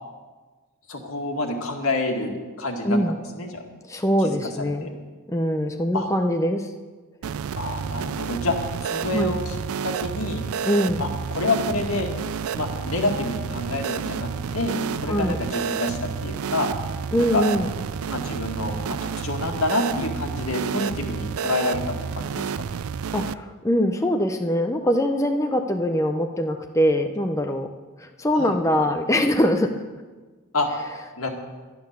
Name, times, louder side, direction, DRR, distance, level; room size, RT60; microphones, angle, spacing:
voice 1, 0.9-3.0 3.3-3.6 4.6-4.9 5.9-6.1 7.6-8.6 8.8-9.5 9.8-10.4 11.0-12.1 12.5-16.7 17.3-17.4 18.1-22.4 28.4-28.6 30.5-30.7 31.2-31.3, left 2 dB, 80° left, 2 dB, 2.0 m, -27 dB
voice 2, 2.8-3.2 3.9-4.9 5.3-6.7 9.1-9.4 10.7-11.1 15.1-15.4 17.1-17.7 23.1-27.7 28.0-29.8, equal, 15° left, 5 dB, 0.6 m, -23 dB
sound 1, 7.2-23.3, right 6 dB, 80° right, 0.4 m, -30 dB
11.5 x 10.5 x 6.8 m, 1.3 s
head